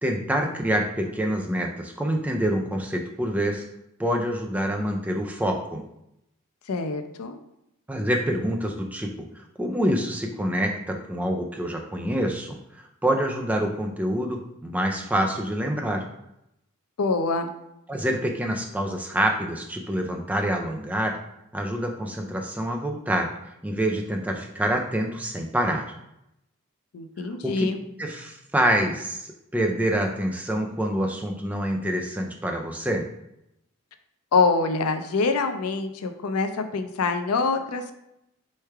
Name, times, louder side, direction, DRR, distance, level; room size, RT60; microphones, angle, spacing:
voice 1, 0.0-3.7 4.0-5.8 7.9-9.3 9.6-16.0 17.9-21.2 21.5-23.3 23.6-25.9 27.2-27.6 28.0-33.1, equal, 5° right, 2 dB, 0.3 m, -26 dB
voice 2, 6.7-7.4 17.0-17.5 26.9-27.8 34.3-38.0, left 4 dB, 85° left, 7 dB, 0.5 m, -25 dB
4.5 x 3.2 x 3.4 m, 0.82 s
head